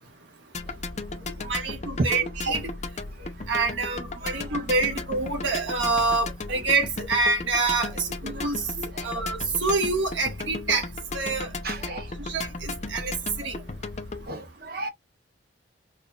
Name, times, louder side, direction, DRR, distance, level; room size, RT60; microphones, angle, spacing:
sound 1, 0.5-14.3, left 3 dB, 35° left, 0.7 m, -35 dB
voice 1, 1.4-2.7 3.5-8.7 9.0-10.9 11.1-11.5 12.2-13.6, right 3 dB, 75° right, 1.5 m, -26 dB
voice 2, 8.8-9.1 11.6-12.0 14.3-14.9, right 2 dB, 50° right, 0.9 m, -31 dB
4.7 x 2.5 x 2.4 m
head